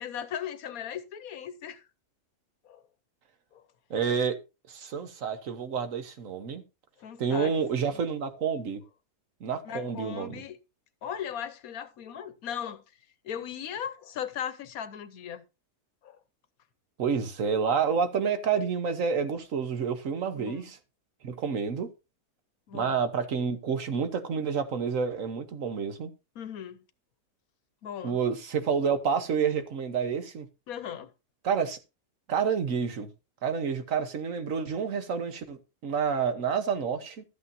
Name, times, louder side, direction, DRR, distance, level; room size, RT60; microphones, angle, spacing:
voice 1, 0.0-1.8 2.6-2.8 3.5-3.6 7.0-8.0 9.6-10.6 11.0-12.8 13.2-15.4 16.0-16.2 20.4-20.7 22.7-23.0 26.3-26.8 27.8-28.2 30.7-31.1, left 9 dB, 65° left, 1.2 m, -38 dB
voice 2, 3.9-4.4 4.7-6.6 7.2-8.8 9.4-10.4 17.0-20.8 21.2-21.9 22.7-26.1 28.0-30.5 31.4-31.8 32.3-33.1 33.4-37.2, right 6 dB, 60° right, 1.3 m, -29 dB
13.0 x 8.5 x 2.7 m
omnidirectional pair, 1.7 m